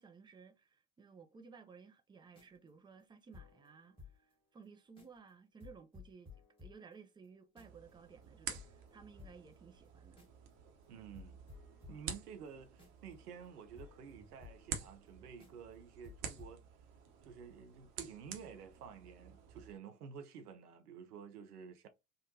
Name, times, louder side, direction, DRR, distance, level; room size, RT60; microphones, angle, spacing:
voice 1, 0.0-6.3 6.6-10.3, right 5 dB, 10° right, 0.4 m, -57 dB
sound 1, 2.2-4.3 4.6-4.7 5.0-5.3 5.6-7.9 8.2-8.3 8.5-10.5 10.8-10.9 11.1-15.1 15.4-15.7 16.0-16.6, left 5 dB, 10° left, 1.7 m, -58 dB
sound 2, 7.6-19.7, right 7 dB, 55° right, 0.9 m, -50 dB
voice 2, 10.9-11.4 11.9-16.6 17.3-21.9, right 7 dB, 80° right, 0.6 m, -51 dB
3.6 x 2.1 x 2.7 m
figure-of-eight pair, 65°, 45 cm